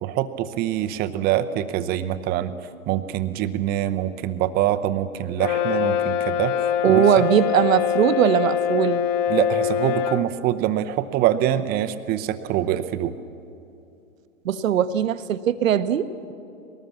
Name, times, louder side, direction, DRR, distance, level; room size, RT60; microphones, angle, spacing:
voice 1, 0.0-2.5 2.9-7.0 9.3-13.1, right 12 dB, 25° right, 10 dB, 0.7 m, -24 dB
Brass instrument, 5.4-10.3, left 9 dB, 25° left, 0.5 m, -23 dB
voice 2, 6.8-9.0 14.4-16.3, right 9 dB, 70° right, 12 dB, 1.1 m, -20 dB
21.0 x 19.0 x 7.2 m, 2.7 s
hypercardioid pair, 125°, 41 cm